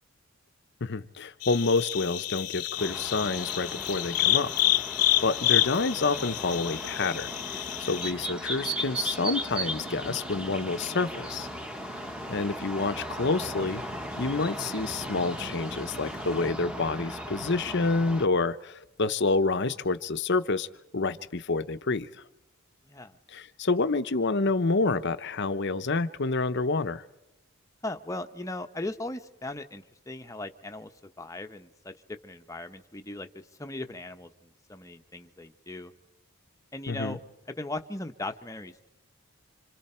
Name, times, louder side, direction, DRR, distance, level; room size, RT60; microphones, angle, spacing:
voice 1, 0.8-4.5 5.2-7.3 7.6-11.5 12.3-13.8 14.2-20.7 20.9-22.1 23.3-27.0 36.9-37.2, left 3 dB, 50° left, 11 dB, 0.8 m, -28 dB
sound 1, 1.4-8.1, left 14 dB, 90° left, 0.7 m, -28 dB
sound 2, 2.8-18.3, right 1 dB, 5° right, 1.1 m, -37 dB
sound 3, 6.0-16.5, right 1 dB, 60° right, 2.6 m, -48 dB
voice 2, 22.9-23.2 27.8-30.9 31.2-35.9 36.7-37.2 37.5-38.9, left 2 dB, 15° left, 7 dB, 0.9 m, -38 dB
27.0 x 27.0 x 4.4 m, 0.95 s
head